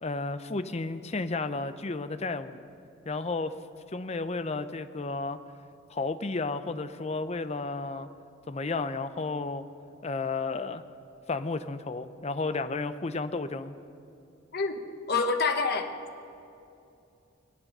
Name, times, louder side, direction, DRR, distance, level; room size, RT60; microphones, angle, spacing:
voice 1, 0.0-2.6 3.1-3.5 3.9-5.4 5.9-8.1 8.5-9.6 10.0-10.8 11.3-13.7, left 3 dB, 35° left, 11 dB, 0.6 m, -32 dB
voice 2, 15.1-15.9, left 4 dB, 50° left, 5 dB, 1.1 m, -26 dB
23.0 x 8.7 x 6.7 m, 2.7 s
head